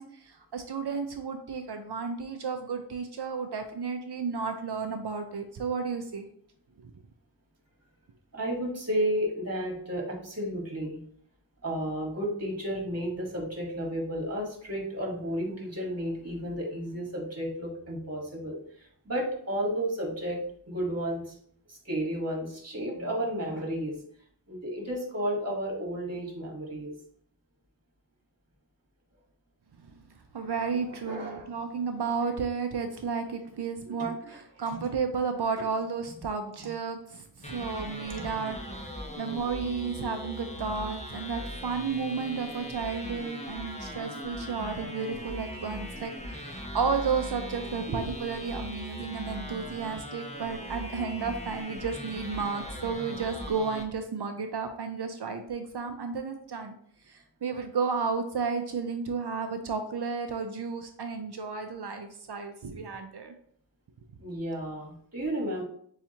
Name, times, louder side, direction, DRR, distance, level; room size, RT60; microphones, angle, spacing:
voice 1, 0.0-6.2 6.8-6.9 29.8-30.0 30.3-56.7 57.1-63.3, right 5 dB, 65° right, 6 dB, 0.5 m, -32 dB
voice 2, 8.3-11.0 11.6-21.4 21.7-24.0 24.5-26.9 31.0-31.5 34.0-34.4 35.6-35.7 38.1-38.2 39.1-39.2 47.9-48.1 64.2-65.6, equal, 35° right, -1 dB, 1.4 m, -32 dB
sound 1, 37.4-53.8, equal, 15° left, 0.7 m, -39 dB
6.9 x 2.4 x 2.8 m, 0.63 s
wide cardioid pair, 50°, 43 cm